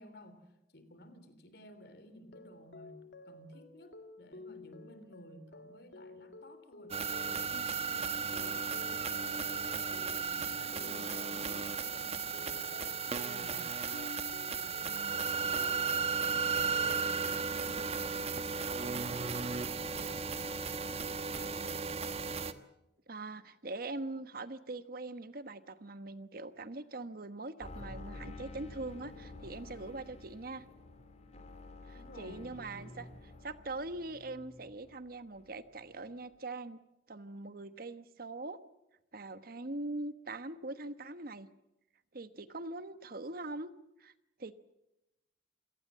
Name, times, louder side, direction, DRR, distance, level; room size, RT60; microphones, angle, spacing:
voice 1, 0.0-9.1 9.6-13.8 14.4-21.9 31.9-33.0, left 1 dB, 65° left, 11 dB, 3.4 m, -56 dB
sound 1, 2.2-17.0, left 2 dB, 85° left, 2.1 m, -52 dB
sound 2, 6.9-22.5, right 5 dB, 35° right, 1.2 m, -35 dB
voice 2, 14.8-15.2 23.1-30.6 31.9-33.1 33.4-36.8 37.1-38.6 39.1-41.5 42.1-43.7 44.0-44.1 44.4-44.5, right 2 dB, 55° right, 12 dB, 1.2 m, -42 dB
sound 3, 27.6-35.1 35.3-36.0 36.3-36.4, left 2 dB, 40° left, 3.2 m, -50 dB
27.5 x 18.0 x 7.5 m, 0.92 s
head